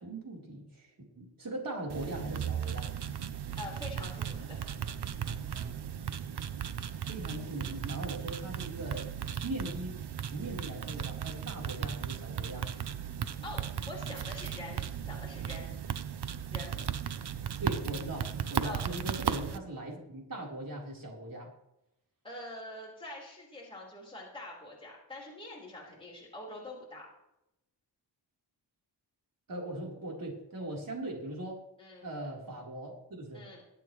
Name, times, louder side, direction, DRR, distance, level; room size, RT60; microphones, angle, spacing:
voice 1, 0.0-2.9 7.1-9.1 9.4-12.7 17.6-21.5 29.5-31.6 32.0-33.5, right 1 dB, 50° right, -2 dB, 3.9 m, -40 dB
sound 1, 1.9-19.6, right 8 dB, 65° right, 0.8 m, -36 dB
voice 2, 3.6-4.6 13.4-15.7 16.5-16.9 18.6-18.8 22.2-27.0 31.8-32.2 33.3-33.6, left 1 dB, 10° left, -4 dB, 4.2 m, -45 dB
24.0 x 9.0 x 3.2 m, 0.84 s
wide cardioid pair, 120°, 43 cm